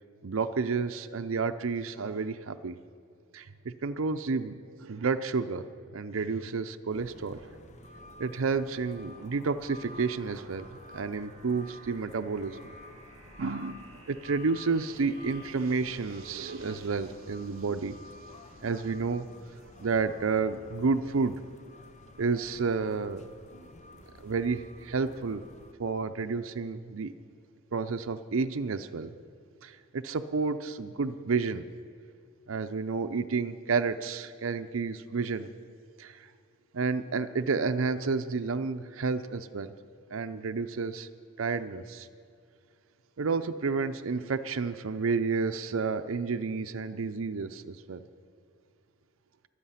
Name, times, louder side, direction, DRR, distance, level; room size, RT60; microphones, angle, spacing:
voice 1, 0.2-2.8 3.3-5.6 5.9-7.5 8.2-10.7 10.9-12.6 13.4-17.9 18.6-19.3 19.8-21.4 22.2-23.2 24.2-25.4 25.8-27.1 27.7-29.1 29.6-31.6 32.5-35.5 36.0-36.3 36.7-39.7 40.1-41.1 41.4-42.1 43.2-48.0, right 4 dB, 80° right, 9 dB, 0.6 m, -30 dB
sound 1, 6.9-25.7, left 2 dB, 35° left, 0.8 m, -51 dB
sound 2, 6.9-16.9, right 2 dB, 30° right, 2.2 m, -55 dB
23.5 x 8.3 x 5.7 m, 2.4 s
head